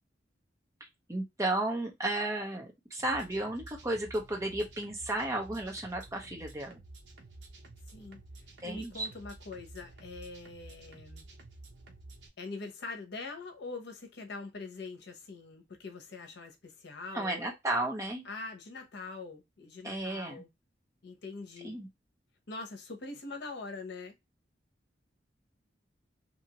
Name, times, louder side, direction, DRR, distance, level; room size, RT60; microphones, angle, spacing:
voice 1, 1.1-6.8 8.6-9.1 17.1-18.2 19.8-20.5 21.6-21.9, right 1 dB, 15° right, 0.9 m, -33 dB
sound 1, 3.0-12.3, right 2 dB, 70° right, 0.7 m, -51 dB
voice 2, 7.9-8.2 8.6-11.2 12.4-17.5 18.2-20.5 21.0-21.8 22.5-24.2, left 3 dB, 65° left, 0.8 m, -43 dB
2.8 x 2.6 x 2.9 m
head